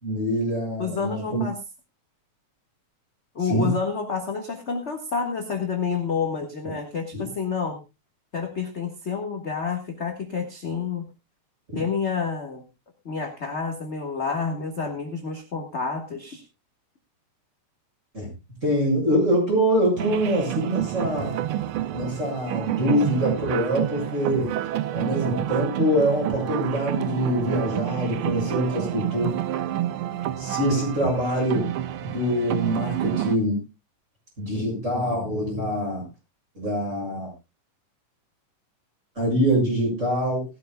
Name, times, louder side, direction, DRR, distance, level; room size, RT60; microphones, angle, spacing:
voice 1, 0.0-1.4 3.5-3.7 7.1-7.2 18.1-18.3 18.6-21.4 21.9-24.5 24.9-29.3 30.4-31.7 32.0-33.6 34.4-36.0 36.6-37.3 39.2-40.4, equal, 20° right, -1 dB, 7.4 m, -24 dB
voice 2, 0.8-1.5 3.3-7.8 8.3-11.1 11.7-12.6 13.0-16.4, left 5 dB, 35° left, 3 dB, 1.1 m, -29 dB
sound 1, 20.0-33.4, right 12 dB, 85° right, 1.1 m, -29 dB
19.5 x 13.0 x 2.2 m, 0.25 s
omnidirectional pair, 3.4 m